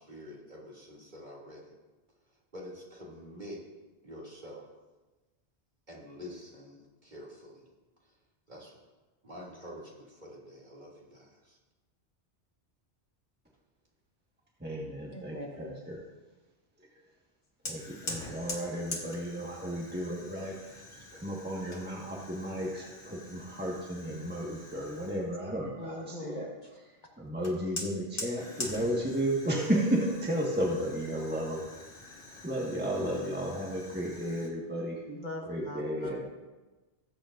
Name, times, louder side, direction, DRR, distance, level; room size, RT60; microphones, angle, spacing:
voice 1, 0.0-1.7 2.5-3.6 4.0-4.6 5.9-7.7 8.0-8.1 8.5-8.8 9.2-11.6, equal, 45° right, -5 dB, 2.7 m, -47 dB
voice 2, 14.6-16.0 16.8-17.0 17.6-26.5 27.2-35.0 35.5-36.2, equal, 10° right, -4 dB, 1.4 m, -33 dB
voice 3, 15.1-15.8 25.8-26.4 35.1-36.2, left 1 dB, 45° left, 0 dB, 1.4 m, -41 dB
Fire, 17.7-25.3 27.4-34.5, left 2 dB, 85° left, 1.9 m, -44 dB
19.0 x 8.5 x 2.5 m, 1.2 s
omnidirectional pair, 1.1 m